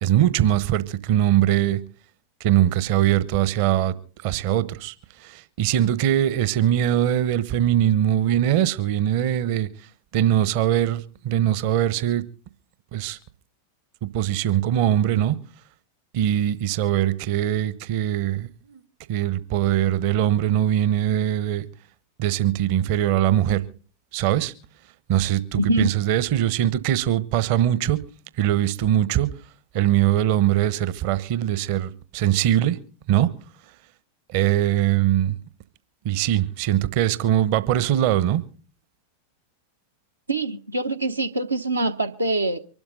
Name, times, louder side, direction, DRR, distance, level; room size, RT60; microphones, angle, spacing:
voice 1, 0.0-1.8 2.4-3.9 4.2-4.9 5.2-9.7 10.1-12.2 12.9-13.2 14.0-15.4 16.1-18.8 19.1-21.6 22.2-23.6 24.1-24.5 25.1-28.0 28.4-29.3 29.7-32.8 33.1-33.3 34.3-35.4 36.0-38.4, right 12 dB, 45° right, 1.1 m, -21 dB
voice 2, 25.5-25.9 40.3-42.6, right 2 dB, 80° right, 1.0 m, -24 dB
24.0 x 12.5 x 3.9 m
figure-of-eight pair, 90°, 0 cm